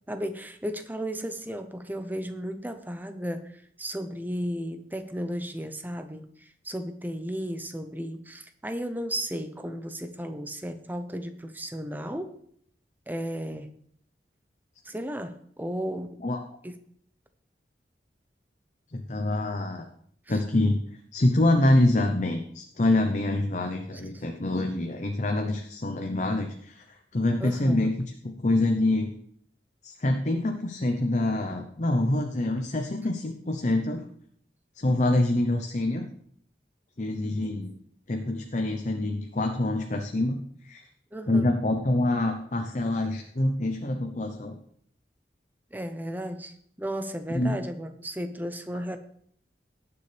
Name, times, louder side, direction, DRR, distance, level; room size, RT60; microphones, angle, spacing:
voice 1, 0.1-3.5 3.8-12.4 13.1-13.7 14.9-16.2 16.6-16.7 20.3-20.4 27.4-27.9 37.4-37.6 41.1-41.5 45.7-49.0, equal, 10° right, 8 dB, 0.8 m, -34 dB
voice 2, 18.9-19.9 20.3-20.8 21.1-27.9 28.2-29.1 29.8-34.0 34.7-36.1 37.0-37.7 38.1-40.8 41.3-44.6 47.3-47.6, left 1 dB, 45° left, 5 dB, 0.8 m, -26 dB
18.0 x 7.0 x 3.4 m, 0.64 s
head